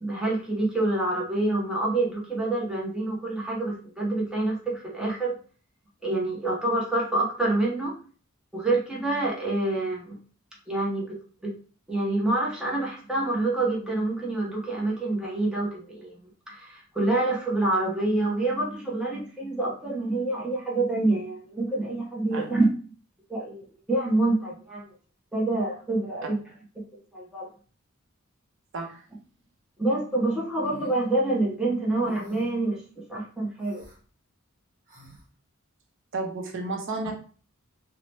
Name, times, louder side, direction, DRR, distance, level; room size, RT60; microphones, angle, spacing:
voice 1, 0.0-5.4 6.0-7.9 8.5-10.2 10.7-11.2 11.4-11.5 11.9-16.2 16.5-22.7 23.3-24.9 25.3-26.4 27.1-27.5 29.8-32.8 33.1-33.8, right 2 dB, 5° right, -4 dB, 0.6 m, -27 dB
sound 1, 30.6-31.0 32.1-32.6 33.6-34.0 34.9-35.2, equal, 40° right, 1.0 m, -48 dB
voice 2, 36.1-37.1, right 3 dB, 60° right, 2 dB, 0.6 m, -32 dB
2.7 x 2.0 x 3.2 m, 0.41 s
head